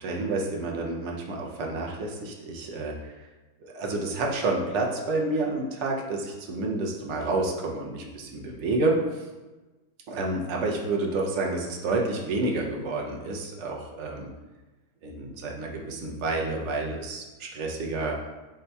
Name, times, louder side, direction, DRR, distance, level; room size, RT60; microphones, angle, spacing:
voice 1, 0.0-3.3 3.6-9.2 10.1-14.3 15.0-18.2, right 2 dB, 65° right, 0 dB, 0.7 m, -29 dB
7.3 x 2.7 x 2.3 m, 1.2 s
omnidirectional pair, 1.9 m